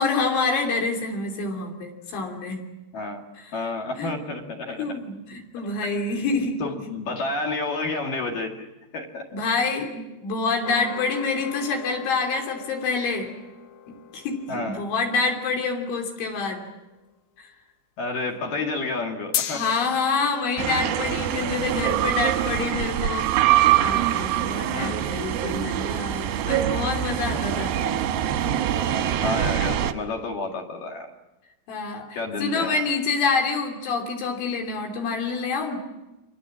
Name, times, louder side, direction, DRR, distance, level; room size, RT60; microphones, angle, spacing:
voice 1, 0.0-2.6 4.0-4.1 4.8-6.6 9.3-13.3 13.9-16.6 19.5-23.3 23.8-27.7 31.7-32.0 32.4-35.8, left 4 dB, 70° left, 2 dB, 5.3 m, -27 dB
voice 2, 2.9-3.2 3.5-5.0 5.8-6.1 6.6-8.7 8.9-9.4 14.5-14.8 18.0-19.7 24.7-25.1 27.3-27.6 28.9-31.1 32.1-32.8, left 3 dB, 55° left, 2 dB, 3.1 m, -30 dB
sound 1, 10.6-17.1 19.3-23.8, left 9 dB, 85° left, 4.7 m, -39 dB
sound 2, 20.6-29.9, right 11 dB, 70° right, 2.4 m, -24 dB
29.5 x 24.5 x 7.5 m, 1.0 s
omnidirectional pair, 5.8 m